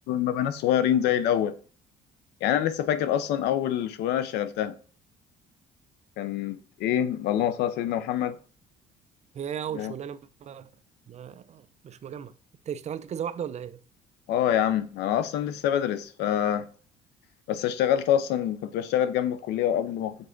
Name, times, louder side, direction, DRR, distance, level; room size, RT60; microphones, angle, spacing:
voice 1, 0.1-1.5 2.4-4.7 6.2-8.4 9.7-9.9 14.3-16.6 17.5-20.2, left 10 dB, 85° left, 0.7 m, -26 dB
voice 2, 9.3-10.7 11.1-12.3 12.7-13.8, right 8 dB, 40° right, 0.5 m, -36 dB
5.2 x 4.8 x 3.9 m
cardioid pair, 110°, 17 cm